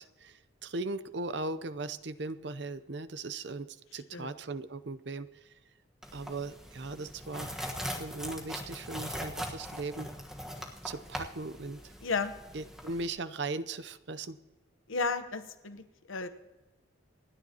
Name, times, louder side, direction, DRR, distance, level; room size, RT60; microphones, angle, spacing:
voice 1, 0.0-3.7 3.9-5.3 6.1-7.6 7.9-10.1 10.8-11.8 12.5-14.4, right 3 dB, 60° right, 13 dB, 0.6 m, -38 dB
sound 1, 6.0-13.1, equal, 5° right, 1.3 m, -41 dB
voice 2, 12.0-12.3 14.9-16.3, left 4 dB, 85° left, 9 dB, 0.9 m, -33 dB
27.5 x 9.8 x 2.9 m, 1.1 s
head